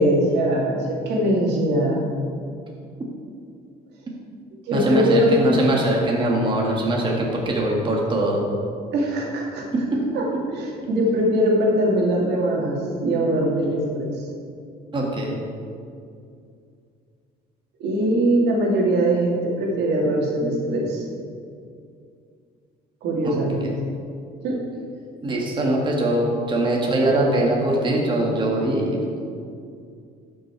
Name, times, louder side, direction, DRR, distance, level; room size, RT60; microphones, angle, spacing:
voice 1, 0.0-2.0 4.7-5.3 8.9-9.6 10.1-10.2 10.5-14.1 17.8-21.0 23.0-23.7 24.4-24.6, right 1 dB, 80° right, -2 dB, 2.4 m, -21 dB
voice 2, 4.7-8.4 9.7-10.0 14.9-15.4 23.2-23.4 23.6-23.7 25.2-29.2, right 1 dB, 30° right, -2 dB, 1.8 m, -22 dB
12.0 x 6.3 x 4.7 m, 2.4 s
cardioid pair, 110°, 17 cm